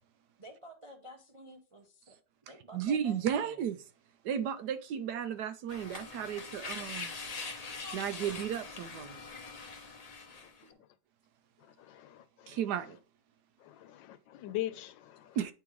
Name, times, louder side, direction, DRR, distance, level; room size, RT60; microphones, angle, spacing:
voice 1, 0.4-3.6, right 1 dB, 50° right, 0.4 m, -52 dB
voice 2, 2.7-3.8 4.2-7.1 7.9-9.2 12.5-13.0 15.4-15.5, right 8 dB, 75° right, 1.1 m, -34 dB
sound 1, 5.7-10.6, left 4 dB, 55° left, 0.4 m, -43 dB
voice 3, 11.6-12.6 13.6-15.4, left 14 dB, 90° left, 1.4 m, -41 dB
9.4 x 3.7 x 3.1 m
omnidirectional pair, 2.0 m